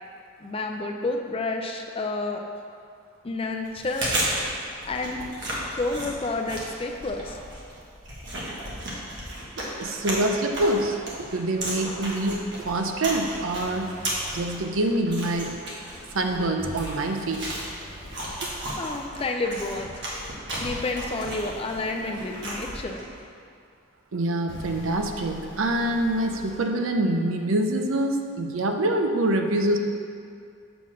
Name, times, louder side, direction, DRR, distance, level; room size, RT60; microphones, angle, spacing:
voice 1, 0.4-2.4 3.2-4.4 4.8-5.2 5.7-7.4 18.8-20.1 20.6-23.0, left 2 dB, 25° left, 3 dB, 0.4 m, -30 dB
Chewing mastication, 3.6-23.2, right 1 dB, 55° right, 1.5 m, -34 dB
voice 2, 9.6-13.9 14.3-15.6 16.1-17.5 24.1-29.8, right 1 dB, 75° right, 4 dB, 0.6 m, -25 dB
sound 1, 13.5-14.8 16.6-18.7 20.5-22.6 24.5-26.6, equal, 60° left, 1.0 m, -42 dB
7.0 x 3.9 x 6.2 m, 2.3 s
head